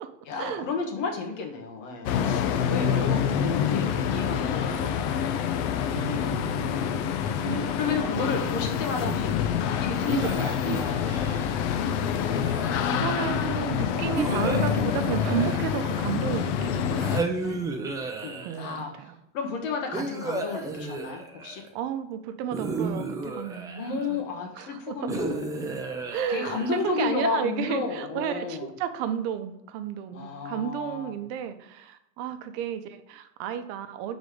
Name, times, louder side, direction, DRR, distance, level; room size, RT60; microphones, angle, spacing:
voice 1, 0.2-5.8 7.7-9.5 9.8-11.1 17.4-17.6 18.2-18.9 19.3-21.6 23.8-28.7 30.1-31.2, left 4 dB, 85° left, 2 dB, 1.5 m, -32 dB
sound 1, 2.0-17.2, left 8 dB, 65° left, 0.7 m, -27 dB
voice 2, 2.8-3.2 4.7-5.1 5.9-6.6 7.4-8.5 9.1-9.2 10.6-10.8 12.1-12.3 12.9-17.7 18.4-19.2 19.9-20.1 21.7-24.2 24.5-25.1 26.1-34.2, right 9 dB, 60° right, 9 dB, 0.7 m, -33 dB
sound 2, 10.1-11.6 12.3-13.2 14.1-16.3 17.0-18.8 19.9-21.7 22.5-24.2 25.1-27.0, right 3 dB, 10° right, 0.5 m, -33 dB
5.1 x 4.1 x 4.8 m, 0.84 s
supercardioid pair, 135°, 37 cm